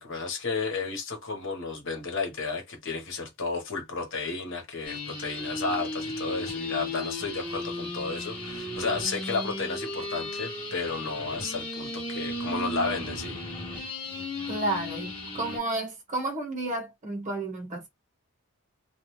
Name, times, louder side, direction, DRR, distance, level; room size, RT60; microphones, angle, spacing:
voice 1, 0.0-13.4, left 4 dB, 60° left, 1.1 m, -32 dB
sound 1, 4.8-15.6, left 2 dB, 25° left, 0.9 m, -35 dB
voice 2, 14.4-17.9, right 2 dB, 35° right, 1.2 m, -31 dB
2.4 x 2.3 x 3.1 m
head